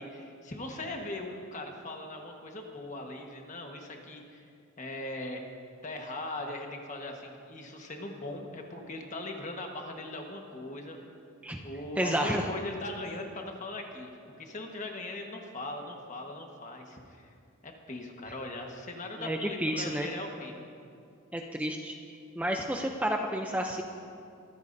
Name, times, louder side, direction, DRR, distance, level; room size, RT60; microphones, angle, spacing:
voice 1, 0.0-4.4 4.8-5.4 5.8-11.0 11.6-14.1 14.4-17.3 17.6-20.7, left 2 dB, 35° left, 2 dB, 1.4 m, -40 dB
voice 2, 12.0-12.4 19.2-20.1 21.3-21.9 22.4-23.8, equal, 5° right, 2 dB, 0.6 m, -30 dB
23.5 x 14.0 x 2.7 m, 2.4 s
head